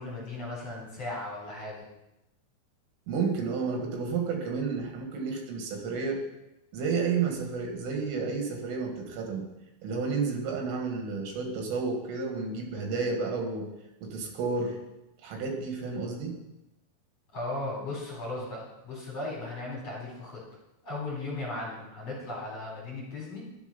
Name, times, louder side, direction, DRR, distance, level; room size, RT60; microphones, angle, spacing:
voice 1, 0.0-1.9 17.3-20.4 20.8-23.4, left 2 dB, 35° left, -5 dB, 4.8 m, -36 dB
voice 2, 3.1-6.2 6.7-9.5 9.8-13.7 14.0-14.8 15.2-16.4, right 4 dB, 85° right, 2 dB, 4.7 m, -31 dB
13.0 x 11.5 x 5.5 m, 0.91 s
omnidirectional pair, 5.5 m